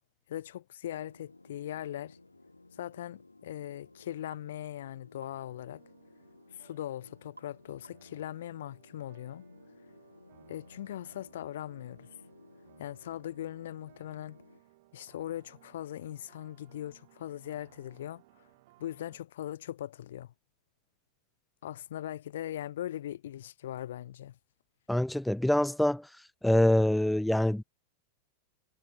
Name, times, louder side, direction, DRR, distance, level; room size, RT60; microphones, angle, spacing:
voice 1, 0.3-2.2 2.8-5.8 6.5-9.4 10.5-12.1 12.8-14.4 14.9-18.5 18.8-20.3 21.6-24.4, left 12 dB, 60° left, 0.4 m, -40 dB
sound 1, 0.9-14.6, left 2 dB, 80° left, 6.7 m, -58 dB
sound 2, 1.0-4.9 5.3-19.2, right 20 dB, 50° right, 5.1 m, -64 dB
sound 3, 4.3-4.5 5.2-5.4 7.4-7.6 7.8-8.2, right 2 dB, 85° right, 2.4 m, -55 dB
voice 2, 24.9-26.1 26.4-27.6, left 1 dB, ahead, 0.5 m, -25 dB
figure-of-eight pair, 90°, 0 cm